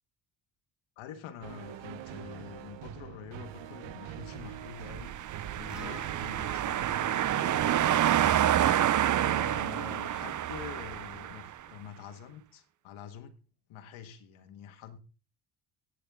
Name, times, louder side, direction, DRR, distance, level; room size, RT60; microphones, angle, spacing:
voice 1, 1.0-5.1 5.5-13.4 13.7-15.0, left 9 dB, 90° left, 1.6 m, -46 dB
sound 1, 1.4-10.8, right 11 dB, 70° right, 1.0 m, -44 dB
sound 2, 4.8-11.5, right 11 dB, 40° right, 0.6 m, -28 dB
Acoustic guitar, 5.7-9.9, right 1 dB, ahead, 1.0 m, -53 dB
13.5 x 9.1 x 3.7 m
cardioid pair, 90°, 47 cm